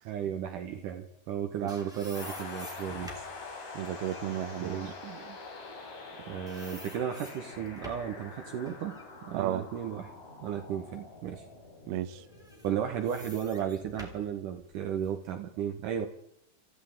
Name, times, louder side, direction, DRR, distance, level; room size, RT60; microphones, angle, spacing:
voice 1, 0.1-3.3 4.6-5.4 6.3-9.0 9.2-10.1 10.4-11.4 12.6-16.1, right 9 dB, 70° right, 4 dB, 2.3 m, -34 dB
sound 1, 1.2-6.1 6.5-8.2 8.6-10.6 11.1-11.2 12.2-15.3, equal, ahead, 2.1 m, -50 dB
sound 2, 2.1-13.7, left 3 dB, 60° left, 4.6 m, -45 dB
voice 2, 3.7-4.9 9.3-9.7 11.9-12.2, right 12 dB, 85° right, 11 dB, 2.8 m, -34 dB
25.5 x 15.0 x 3.6 m, 0.72 s
omnidirectional pair, 4.3 m